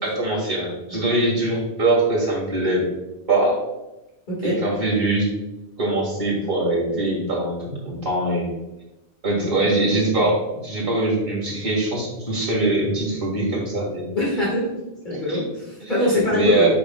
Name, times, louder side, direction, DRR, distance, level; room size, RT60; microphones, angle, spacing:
voice 1, 0.0-2.8 3.3-3.6 4.4-5.3 5.8-8.5 9.2-14.1 15.1-15.4 15.8-15.9 16.3-16.7, right 2 dB, 60° right, -3 dB, 2.4 m, -22 dB
voice 2, 4.3-4.6 14.2-14.7 15.0-16.7, left 1 dB, 50° left, -6 dB, 2.1 m, -22 dB
8.4 x 5.3 x 2.3 m, 0.98 s
omnidirectional pair, 1.1 m